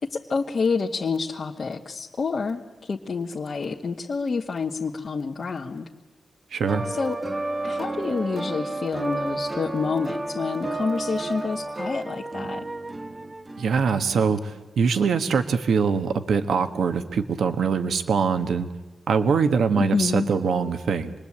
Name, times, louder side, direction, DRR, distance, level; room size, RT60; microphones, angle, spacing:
voice 1, 0.0-5.9 6.9-7.2 7.6-12.7 19.8-20.3, left 4 dB, 55° left, -1 dB, 1.4 m, -28 dB
voice 2, 6.5-6.9 13.6-18.7 19.1-21.1, right 5 dB, 90° right, 8 dB, 1.2 m, -23 dB
sound 1, 6.7-14.3, right 2 dB, 30° right, 1.1 m, -32 dB
26.5 x 20.5 x 8.6 m, 1.2 s
cardioid pair, 85°, 0 cm